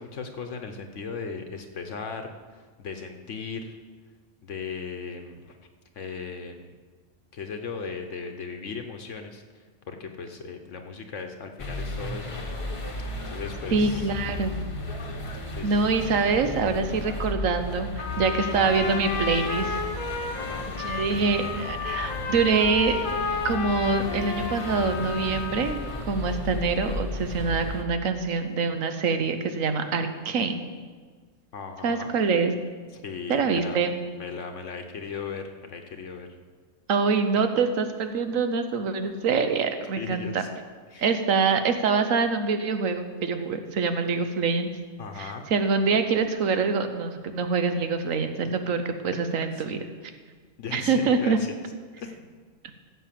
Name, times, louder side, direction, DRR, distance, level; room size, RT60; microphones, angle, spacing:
voice 1, 0.0-3.8 4.4-5.6 5.9-6.7 7.3-9.4 9.9-12.5 13.2-14.1 15.5-15.8 20.4-21.0 31.5-32.1 32.9-33.8 34.2-36.3 40.0-40.5 40.9-41.1 45.0-45.4 49.4-49.6 50.6-51.5 52.0-52.3, left 5 dB, 65° left, 5 dB, 1.2 m, -37 dB
sound 1, 11.6-27.8, left 2 dB, 25° left, 1.0 m, -34 dB
voice 2, 13.7-14.6 15.6-19.8 20.8-23.0 23.4-25.8 26.1-30.6 31.8-32.5 33.3-34.0 36.9-40.4 41.0-44.7 45.2-49.8 50.7-51.4, right 4 dB, 80° right, 8 dB, 1.3 m, -25 dB
Trumpet, 18.0-26.1, left 5 dB, 85° left, 1.4 m, -32 dB
14.0 x 5.8 x 7.6 m, 1.5 s
omnidirectional pair, 1.4 m